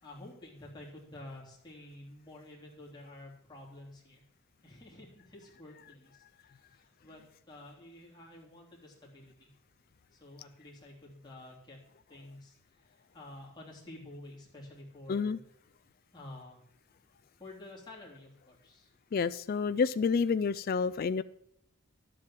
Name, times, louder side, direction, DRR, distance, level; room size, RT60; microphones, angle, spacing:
voice 1, 0.0-4.2 4.6-9.5 10.1-11.8 12.1-15.4 16.1-16.6 17.4-18.9, left 1 dB, 20° left, -4 dB, 3.2 m, -50 dB
voice 2, 15.1-15.4 19.1-21.2, left 5 dB, 40° left, 13 dB, 0.3 m, -29 dB
11.5 x 7.7 x 7.5 m, 0.75 s
head